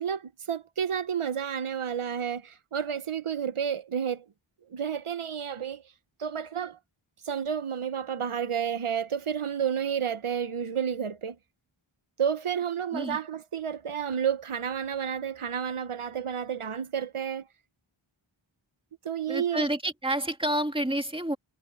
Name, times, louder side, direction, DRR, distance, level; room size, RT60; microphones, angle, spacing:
voice 1, 0.0-4.2 4.7-5.8 6.2-6.8 7.3-11.4 12.2-17.4 19.0-19.7, right 8 dB, 85° right, 0.9 m, -31 dB
voice 2, 19.3-21.4, right 1 dB, 10° right, 2.2 m, -29 dB
wide cardioid pair, 50°, 49 cm